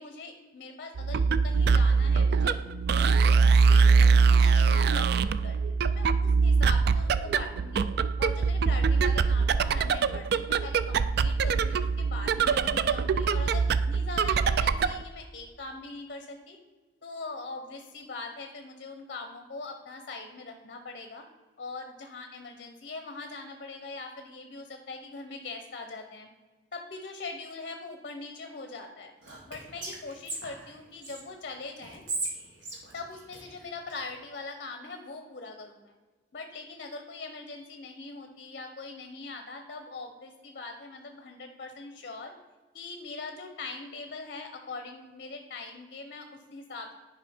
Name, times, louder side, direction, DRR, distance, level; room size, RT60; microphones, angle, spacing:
voice 1, 0.0-2.6 3.0-7.9 8.2-16.6 17.0-21.2 21.6-26.3 26.7-29.1 29.5-32.0 32.9-35.9 36.3-42.3 42.7-46.9, left 3 dB, 55° left, 6 dB, 0.8 m, -42 dB
sound 1, 1.0-15.0, right 5 dB, 60° right, 0.3 m, -23 dB
Whispering, 29.2-31.2 31.8-34.0, right 2 dB, 85° right, 1.9 m, -38 dB
10.0 x 5.1 x 4.3 m, 1.3 s
head